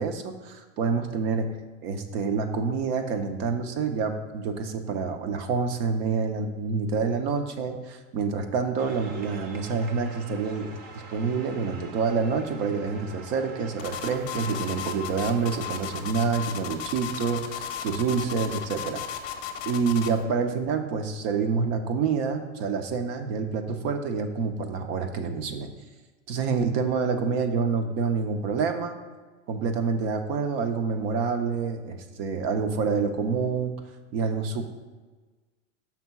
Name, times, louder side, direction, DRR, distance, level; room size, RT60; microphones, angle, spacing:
voice 1, 0.0-1.5 1.8-19.0 19.7-25.7 26.3-29.0 29.5-33.7 34.1-34.7, right 5 dB, 50° right, 7 dB, 0.8 m, -27 dB
sound 1, 8.8-16.1, right 3 dB, 25° right, 0.4 m, -45 dB
sound 2, 13.8-20.2, left 8 dB, 45° left, 0.7 m, -35 dB
5.9 x 3.6 x 5.8 m, 1.3 s
hypercardioid pair, 125°, 39 cm